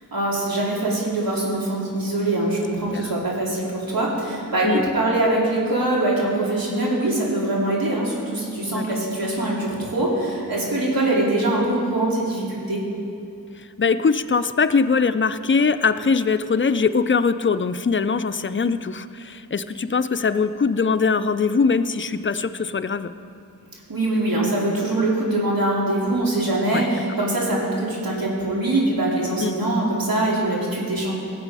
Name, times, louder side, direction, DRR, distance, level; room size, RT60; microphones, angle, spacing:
voice 1, 0.1-12.8 23.9-31.1, right 1 dB, 70° right, -4 dB, 2.9 m, -23 dB
voice 2, 13.6-23.1 26.7-26.8 29.4-29.6, left 5 dB, 35° left, 11 dB, 0.4 m, -22 dB
18.0 x 7.5 x 4.8 m, 2.6 s
wide cardioid pair, 75°, 36 cm